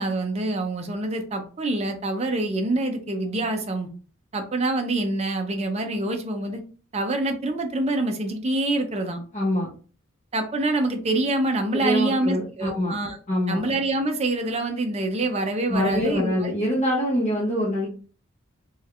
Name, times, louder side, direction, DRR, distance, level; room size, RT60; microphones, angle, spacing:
voice 1, 0.0-3.9 4.3-6.6 6.9-9.2 10.3-13.2 13.5-16.5, right 2 dB, 30° right, 4 dB, 0.5 m, -26 dB
voice 2, 9.3-9.7 11.7-12.9 13.3-13.6 15.7-17.9, left 1 dB, 35° left, -6 dB, 1.0 m, -24 dB
3.1 x 3.1 x 2.4 m, 0.39 s
head